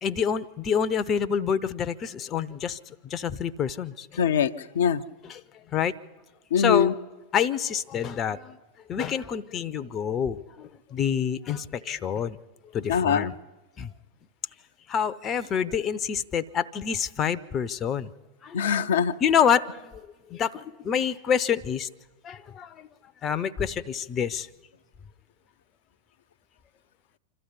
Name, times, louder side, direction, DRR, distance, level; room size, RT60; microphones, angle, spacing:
voice 1, 0.0-4.2 5.2-6.0 6.6-6.9 7.3-8.6 8.9-12.4 12.7-13.4 13.8-13.9 14.9-18.1 18.4-18.7 19.2-21.9 22.2-22.9 23.2-24.5, left 8 dB, 30° left, 12 dB, 0.7 m, -27 dB
voice 2, 4.2-5.0 6.5-6.9 12.9-13.3 18.5-19.1, left 7 dB, 60° left, 7 dB, 0.7 m, -23 dB
26.0 x 13.5 x 9.9 m, 1.1 s
figure-of-eight pair, 90°, 0 cm